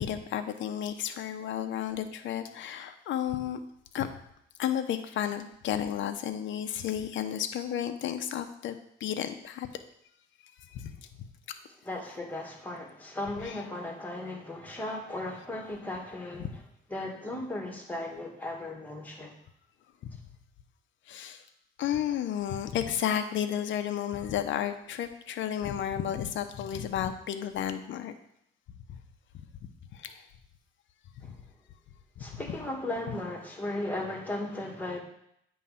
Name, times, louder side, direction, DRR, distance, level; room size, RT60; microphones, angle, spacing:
voice 1, 0.0-3.6 3.9-4.1 4.6-9.7 10.7-10.9 13.4-13.6 21.1-21.4 21.8-28.1 28.9-29.0 29.9-30.2 32.2-32.4, left 10 dB, 70° left, 8 dB, 0.6 m, -32 dB
voice 2, 11.8-16.5 16.9-19.3 31.2-31.3 32.2-35.0, left 1 dB, 10° left, 0 dB, 1.9 m, -36 dB
8.6 x 3.1 x 5.6 m, 0.73 s
cardioid pair, 90°, 20 cm